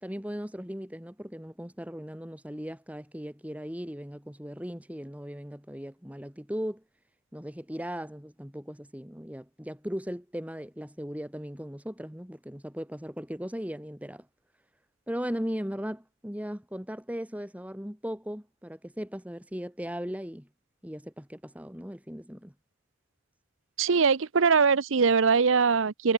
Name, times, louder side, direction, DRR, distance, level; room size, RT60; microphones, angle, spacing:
voice 1, 0.0-6.8 7.3-14.3 15.1-20.5 20.8-22.5, equal, 5° right, 2.4 m, -37 dB
voice 2, 23.8-26.1, right 5 dB, 85° right, 0.7 m, -22 dB
head